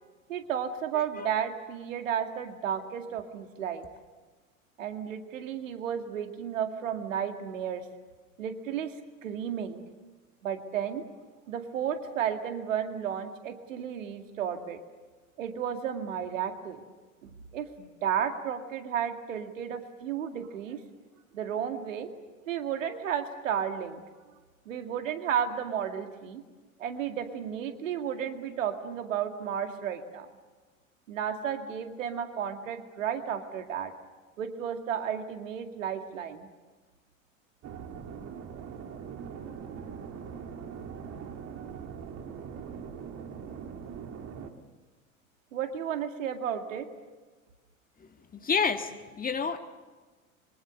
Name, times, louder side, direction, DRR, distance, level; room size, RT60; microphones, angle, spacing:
voice 1, 0.3-3.9 4.8-7.8 8.4-8.9 9.2-9.8 10.4-11.1 11.5-14.8 15.4-16.8 17.2-20.8 21.3-22.1 22.5-24.0 24.7-26.4 26.8-30.3 31.1-33.9 34.4-36.5 45.5-46.9, right 8 dB, 70° right, 6 dB, 2.2 m, -33 dB
voice 2, 0.9-1.3 48.0-49.6, left 5 dB, 20° left, 7 dB, 1.9 m, -30 dB
sound 1, 37.6-44.5, right 7 dB, 40° right, 2.6 m, -41 dB
26.5 x 24.0 x 6.6 m, 1.3 s
figure-of-eight pair, 75°, 40 cm